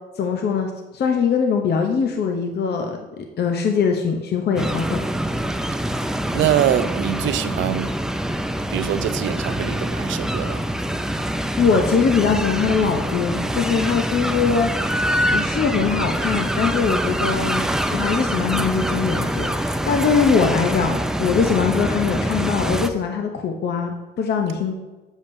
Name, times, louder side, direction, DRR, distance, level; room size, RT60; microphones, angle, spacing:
voice 1, 0.2-5.0 11.6-14.9 15.3-17.6 17.9-24.7, left 5 dB, 55° left, 0.7 m, -22 dB
sound 1, 4.6-22.9, right 1 dB, 5° right, 0.4 m, -25 dB
voice 2, 5.7-8.0 8.7-10.6, right 11 dB, 75° right, 0.5 m, -24 dB
7.1 x 7.1 x 2.6 m
cardioid pair, 90°, 20 cm